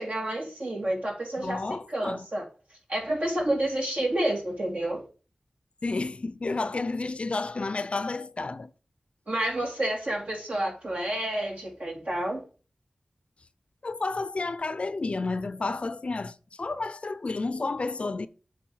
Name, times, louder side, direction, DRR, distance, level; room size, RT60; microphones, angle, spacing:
voice 1, 0.0-2.4 2.7-5.1 9.3-12.5, right 1 dB, 70° right, 2.9 m, -29 dB
voice 2, 1.4-2.3 5.8-8.7 13.8-18.3, left 3 dB, 55° left, 0.5 m, -31 dB
7.7 x 3.6 x 6.3 m
wide cardioid pair, 65°, 2 cm